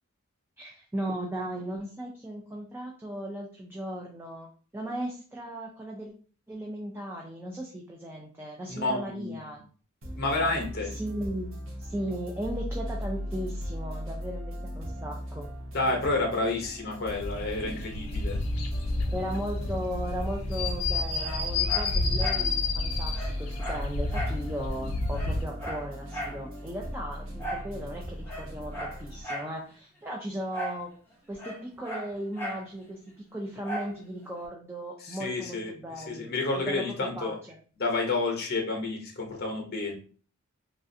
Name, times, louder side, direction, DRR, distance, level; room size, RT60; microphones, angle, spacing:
voice 1, 0.6-4.5 4.7-6.1 6.5-9.6 10.9-11.5 11.8-15.5 19.1-30.9 31.3-33.0 33.3-37.6, equal, 10° right, -1 dB, 0.4 m, -37 dB
voice 2, 8.7-9.4 10.2-11.0 15.7-18.4 35.0-37.4 37.8-39.9, left 2 dB, 50° left, 2 dB, 0.8 m, -30 dB
sound 1, 10.0-29.2, equal, 65° right, 0.8 m, -37 dB
sound 2, 17.0-25.4, left 3 dB, 85° left, 0.4 m, -31 dB
Dog, 21.2-22.5 22.8-22.9 23.1-24.4 24.8-24.9 25.1-26.4 27.4-27.7 28.2-29.5 30.5-30.8 31.1-32.7 33.6-34.0 34.4-34.5, right 1 dB, 10° left, 0.8 m, -37 dB
3.1 x 2.4 x 2.6 m, 0.41 s
head